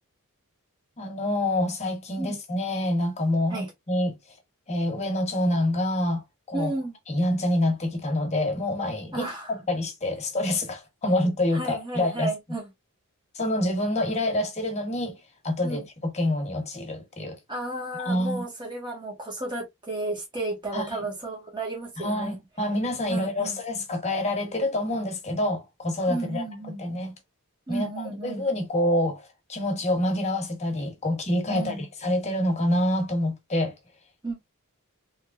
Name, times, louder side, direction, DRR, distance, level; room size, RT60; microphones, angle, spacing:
voice 1, 1.0-4.2 4.7-6.2 6.5-6.7 7.1-12.3 13.3-15.2 15.4-17.4 18.0-18.4 20.7-21.1 22.0-26.4 26.8-27.1 27.7-33.7, left 1 dB, 30° left, 1.1 m, -27 dB
voice 2, 6.5-6.9 9.1-9.5 11.1-11.2 11.5-12.7 15.6-15.8 17.5-22.4 23.1-23.6 26.1-26.8 27.7-28.4 31.5-31.9 34.2-34.4, right 2 dB, 20° right, 1.5 m, -33 dB
3.6 x 3.0 x 2.4 m
head